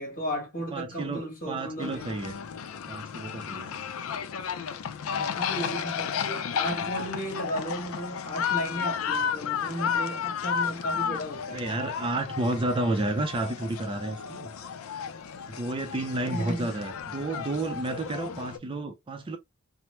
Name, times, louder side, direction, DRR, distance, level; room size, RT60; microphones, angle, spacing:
voice 1, 0.0-2.1 5.4-11.7 16.3-16.7 18.3-18.4, equal, 40° left, 1.4 m, -34 dB
voice 2, 0.7-2.3 2.9-3.9 5.1-5.3 11.5-14.5 15.5-19.4, right 2 dB, 25° right, 0.4 m, -31 dB
sound 1, 1.8-18.6, left 7 dB, 85° left, 0.4 m, -33 dB
2.9 x 2.0 x 3.1 m
head